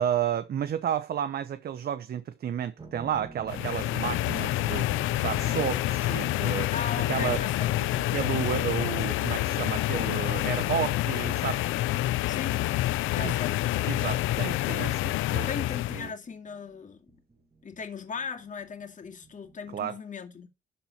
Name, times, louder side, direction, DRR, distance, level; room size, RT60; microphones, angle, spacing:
voice 1, 0.0-6.7 7.1-7.4 7.8-11.7 13.2-13.3 13.8-15.5 15.9-16.1 19.7-20.0, right 9 dB, 50° right, 0.8 m, -32 dB
sound 1, 2.8-19.8, right 3 dB, 20° right, 2.1 m, -51 dB
sound 2, 3.5-16.1, left 16 dB, 85° left, 0.4 m, -28 dB
voice 2, 6.7-8.1 11.7-12.7 13.1-13.6 15.5-17.2 17.6-20.5, left 6 dB, 40° left, 2.3 m, -39 dB
12.5 x 4.3 x 5.7 m
cardioid pair, 90°, 20 cm